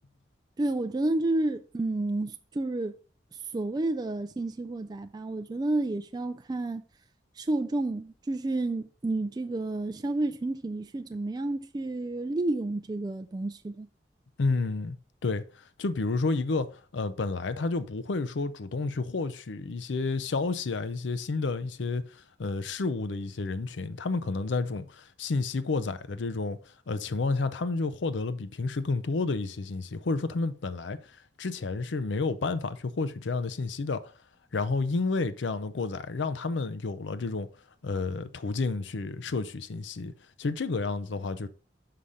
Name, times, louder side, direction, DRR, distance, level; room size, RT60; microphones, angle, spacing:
voice 1, 0.6-2.9 3.3-6.8 7.4-13.9, right 2 dB, 20° right, 0.3 m, -30 dB
voice 2, 14.4-15.0 15.2-26.6 26.9-31.1 31.4-34.1 34.5-37.5 37.8-40.1 40.4-41.5, left 3 dB, 90° left, 0.6 m, -30 dB
5.8 x 5.0 x 5.4 m
head